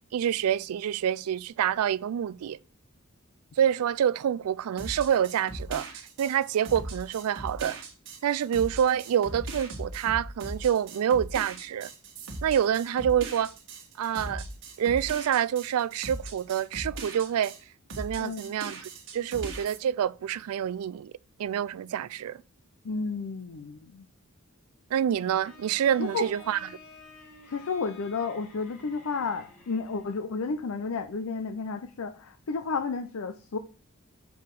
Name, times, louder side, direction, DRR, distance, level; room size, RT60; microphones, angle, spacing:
voice 1, 0.1-2.6 3.6-7.8 8.2-11.9 12.4-13.5 14.0-14.4 14.8-17.5 18.0-21.1 21.4-22.4 24.9-26.7, right 9 dB, 75° right, 0.3 m, -27 dB
sound 1, 4.8-17.6 17.9-19.8, right 2 dB, 60° right, 1.6 m, -39 dB
voice 2, 22.8-24.0 26.0-26.3 27.5-33.6, left 4 dB, 65° left, 0.5 m, -32 dB
Bowed string instrument, 25.4-30.3, left 3 dB, 85° left, 2.8 m, -51 dB
6.9 x 4.7 x 4.6 m
head